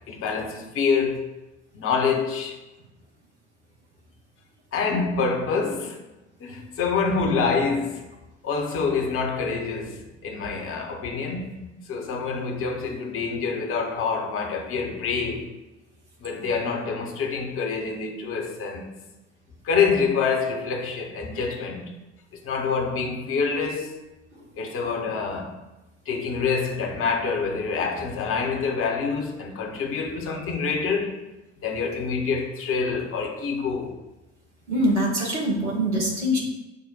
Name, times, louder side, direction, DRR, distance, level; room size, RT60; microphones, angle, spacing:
voice 1, 0.1-1.3 1.7-2.6 4.7-6.0 6.4-8.0 8.4-15.5 16.2-18.9 19.6-21.9 22.4-23.9 24.5-25.6 26.1-31.2 31.6-34.0, left 5 dB, 40° left, 0.7 m, -26 dB
voice 2, 24.3-24.9 30.3-30.4 34.7-36.4, equal, 85° right, 0.9 m, -25 dB
5.1 x 2.1 x 4.2 m
figure-of-eight pair, 55°, 34 cm